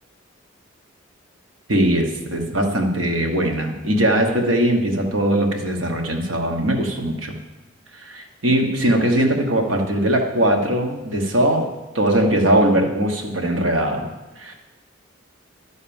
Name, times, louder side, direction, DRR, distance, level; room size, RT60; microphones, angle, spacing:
voice 1, 1.7-7.4 7.9-14.5, right 1 dB, 85° right, 3 dB, 1.3 m, -20 dB
11.0 x 4.2 x 7.1 m, 1.1 s
head